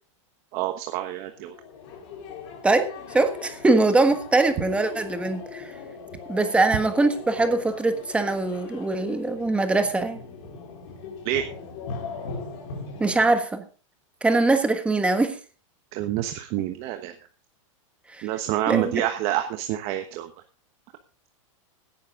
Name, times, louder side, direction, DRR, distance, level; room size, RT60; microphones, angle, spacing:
voice 1, 0.5-1.5 11.2-11.4 15.9-17.1 18.2-20.3, right 13 dB, 40° right, 7 dB, 1.1 m, -27 dB
sound 1, 1.3-13.4, left 5 dB, 50° left, 4.8 m, -39 dB
voice 2, 3.1-5.7 6.3-10.2 13.0-13.7 14.2-15.4 18.1-18.3 18.7-19.0, right 2 dB, 5° right, 8 dB, 1.4 m, -22 dB
17.0 x 10.0 x 3.8 m, 0.37 s
supercardioid pair, 150°, 17 cm